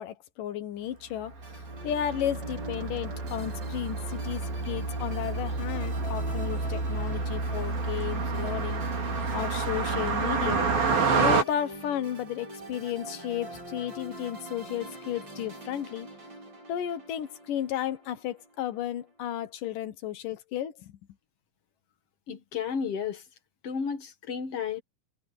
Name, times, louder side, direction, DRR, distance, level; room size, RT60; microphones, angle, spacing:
voice 1, 0.0-1.3 1.8-8.8 9.3-10.7 11.2-16.1 16.7-21.0, left 10 dB, 75° left, 2.9 m, -33 dB
Car passing by, 1.3-11.4, right 4 dB, 90° right, 6.6 m, -29 dB
sound 1, 1.4-18.8, right 1 dB, 30° right, 4.8 m, -44 dB
voice 2, 22.3-23.2 23.6-24.8, left 6 dB, 55° left, 2.1 m, -32 dB
omnidirectional pair, 4.0 m